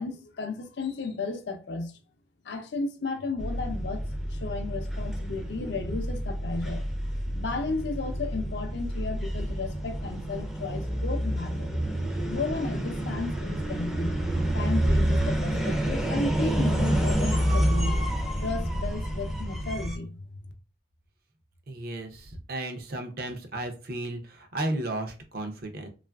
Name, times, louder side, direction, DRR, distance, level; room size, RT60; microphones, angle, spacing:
voice 1, 0.0-1.9 2.4-11.7 12.2-14.1 14.5-20.3, left 3 dB, 65° left, 0.5 m, -34 dB
sound 1, 3.4-20.0, right 1 dB, ahead, 0.4 m, -28 dB
voice 2, 21.7-25.9, right 1 dB, 50° right, 0.5 m, -34 dB
3.0 x 2.4 x 2.2 m
head